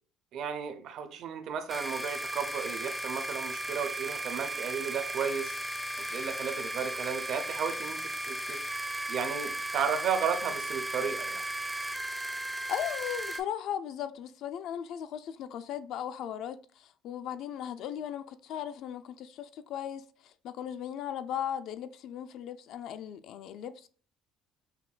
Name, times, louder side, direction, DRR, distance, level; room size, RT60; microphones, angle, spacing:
voice 1, 0.3-5.6 6.0-8.6 9.1-11.4, right 7 dB, 60° right, 0.5 m, -34 dB
sound 1, 1.7-13.4, right 1 dB, 5° right, 0.4 m, -36 dB
voice 2, 12.7-23.9, left 10 dB, 65° left, 0.3 m, -37 dB
5.8 x 2.2 x 2.4 m
cardioid pair, 120°, 0 cm